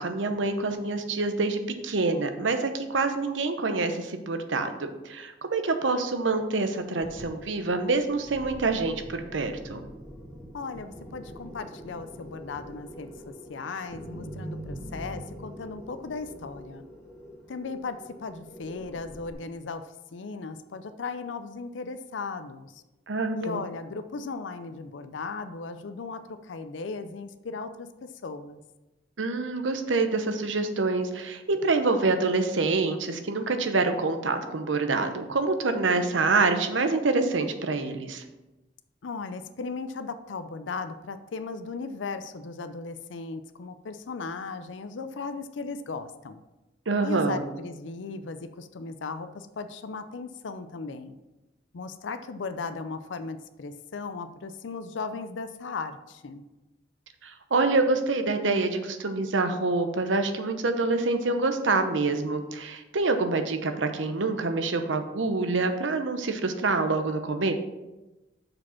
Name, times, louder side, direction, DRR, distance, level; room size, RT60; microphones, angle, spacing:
voice 1, 0.0-9.8 23.1-23.6 29.2-38.2 46.9-47.4 57.2-67.5, right 3 dB, 85° right, 8 dB, 0.8 m, -26 dB
sound 1, 7.0-19.3, equal, 5° left, 1.6 m, -44 dB
voice 2, 10.5-16.8 17.5-19.9 20.1-22.8 23.4-28.6 39.0-46.4 47.0-51.1 51.7-56.4, left 4 dB, 80° left, 10 dB, 0.5 m, -37 dB
6.4 x 5.0 x 5.7 m, 1.0 s
head